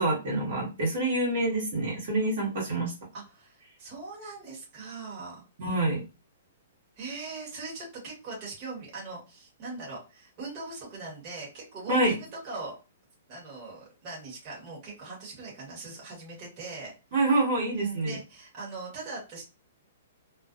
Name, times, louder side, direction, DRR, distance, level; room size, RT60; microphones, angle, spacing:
voice 1, 0.0-2.9 5.6-6.0 11.9-12.1 17.1-18.2, right 2 dB, 55° right, -4 dB, 1.2 m, -26 dB
voice 2, 3.1-5.4 7.0-12.7 13.3-16.9 17.7-19.4, right 3 dB, 30° right, -5 dB, 1.3 m, -41 dB
2.5 x 2.2 x 2.4 m, 0.30 s
hypercardioid pair, 160°, 0 cm